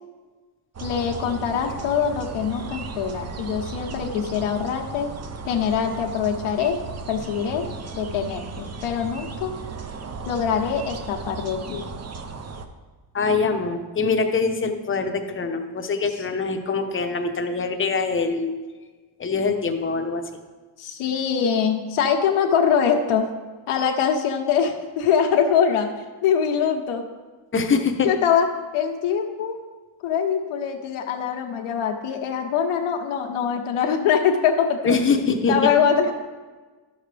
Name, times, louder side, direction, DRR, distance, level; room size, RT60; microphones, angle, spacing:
sound 1, 0.7-12.7, right 4 dB, 30° right, 0.7 m, -35 dB
voice 1, 0.8-5.1 5.5-6.8 7.1-7.7 8.0-9.5 10.3-11.9 20.8-23.3 23.7-27.1 28.0-28.5 28.7-29.6 30.0-35.0 35.5-36.1, left 7 dB, 90° left, 2 dB, 1.2 m, -23 dB
voice 2, 13.1-18.5 19.2-20.2 27.5-28.1 34.8-35.7, left 4 dB, 25° left, 5 dB, 0.9 m, -23 dB
12.0 x 6.5 x 3.4 m, 1.3 s
cardioid pair, 115°, 48 cm